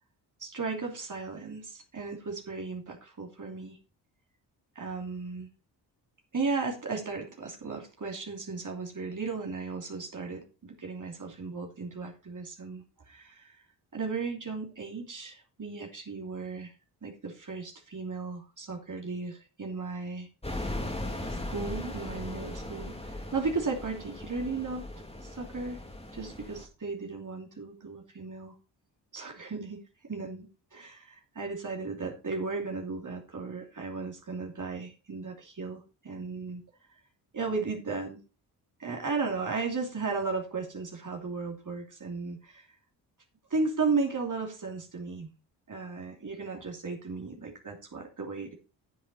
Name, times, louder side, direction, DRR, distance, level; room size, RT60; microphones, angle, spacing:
voice 1, 0.4-3.8 4.7-5.5 6.3-13.5 13.9-16.7 17.0-20.3 21.3-24.9 25.2-25.8 26.1-28.5 29.1-29.8 30.1-36.6 37.3-38.2 38.8-42.7 43.5-45.3 45.7-48.5, right 4 dB, 40° right, 1 dB, 2.9 m, -35 dB
sound 1, 20.4-26.7, left 1 dB, 10° left, 2.5 m, -38 dB
9.5 x 8.1 x 4.3 m, 0.33 s
hypercardioid pair, 45°, 48 cm